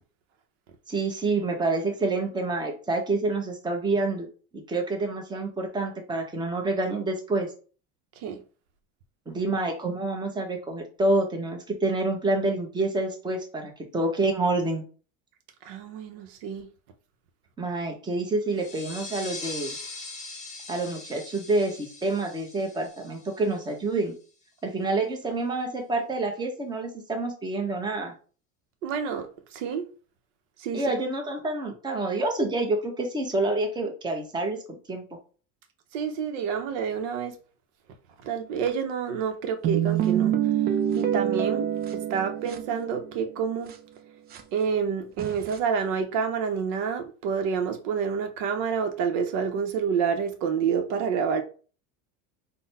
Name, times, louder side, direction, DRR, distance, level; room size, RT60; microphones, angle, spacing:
voice 1, 0.9-4.3 4.5-7.5 9.3-14.8 17.6-19.8 20.7-24.1 24.6-28.1 30.7-34.6 34.9-35.0, right 2 dB, 10° right, 0.9 m, -27 dB
voice 2, 15.6-16.7 28.8-29.8 30.6-30.8 35.9-37.4 38.2-40.5 40.9-43.7 44.5-51.4, right 6 dB, 75° right, 0.8 m, -28 dB
sound 1, 18.5-23.9, left 3 dB, 20° left, 0.8 m, -41 dB
sound 2, 39.6-43.3 43.7-43.8 44.3-44.4 45.2-45.6, right 10 dB, 25° right, 0.4 m, -26 dB
3.9 x 2.2 x 4.1 m
cardioid pair, 135°, 36 cm